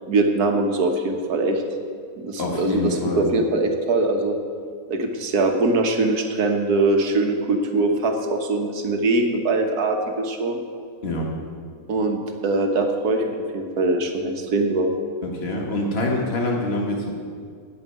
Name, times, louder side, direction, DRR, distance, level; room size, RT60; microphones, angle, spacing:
voice 1, 0.1-1.6 2.2-4.4 4.9-10.6 11.9-13.3 13.5-14.9, right 2 dB, 80° right, 4 dB, 1.7 m, -22 dB
voice 2, 2.4-3.3 11.0-11.3 15.2-17.1, left 2 dB, 40° left, -1 dB, 2.0 m, -25 dB
9.0 x 8.3 x 9.3 m, 2.1 s
omnidirectional pair, 1.6 m